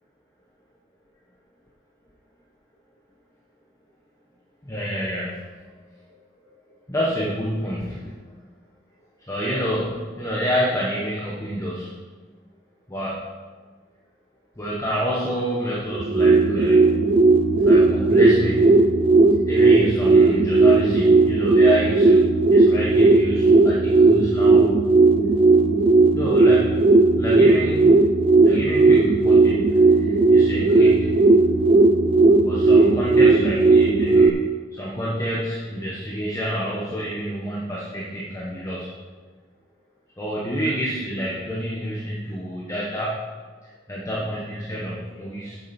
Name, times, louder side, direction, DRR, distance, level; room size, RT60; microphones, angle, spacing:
voice 1, 4.6-5.7 6.4-6.5 6.9-8.1 9.3-11.9 12.9-13.2 14.6-16.9 17.6-18.7 19.5-24.7 26.1-26.8 27.2-27.8 28.4-31.1 32.4-38.9 40.2-43.2 43.6-45.6, equal, 15° left, -6 dB, 1.2 m, -28 dB
sound 1, 15.9-34.3, right 3 dB, 30° right, 0.4 m, -16 dB
8.9 x 7.4 x 4.4 m, 1.4 s
head